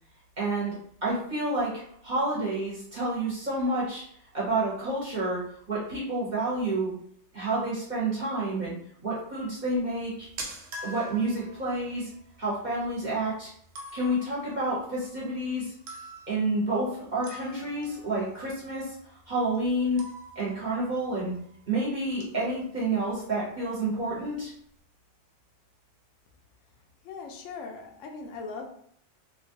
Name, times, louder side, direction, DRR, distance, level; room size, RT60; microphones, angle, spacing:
voice 1, 0.4-0.7 1.0-1.7 2.0-4.0 4.3-5.4 5.7-6.9 7.3-8.7 9.0-10.3 10.8-12.1 12.4-13.5 13.9-15.7 16.3-18.9 19.3-20.0 20.4-21.3 21.7-24.5, right 2 dB, 40° right, -7 dB, 1.0 m, -29 dB
sound 1, 9.9-21.8 22.1-22.5 22.8-23.0 23.5-23.6 23.9-24.4, right 1 dB, 70° right, 0.9 m, -46 dB
voice 2, 27.0-28.7, left 4 dB, 80° left, 2 dB, 0.9 m, -39 dB
2.8 x 2.5 x 2.7 m, 0.65 s
omnidirectional pair, 1.3 m